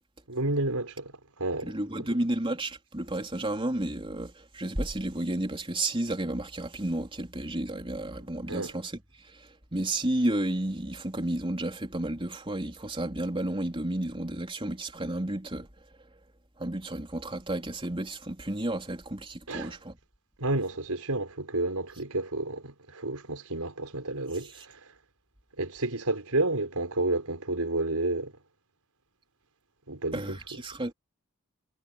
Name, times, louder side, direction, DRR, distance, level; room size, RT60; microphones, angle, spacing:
voice 1, 0.3-2.1 8.5-8.7 19.5-19.7 20.4-24.9 25.6-28.3 29.9-30.4, right 2 dB, 85° right, 4.7 m, -31 dB
voice 2, 1.6-8.9 9.2-15.7 16.6-20.0 30.1-30.9, right 1 dB, 25° right, 3.7 m, -32 dB
head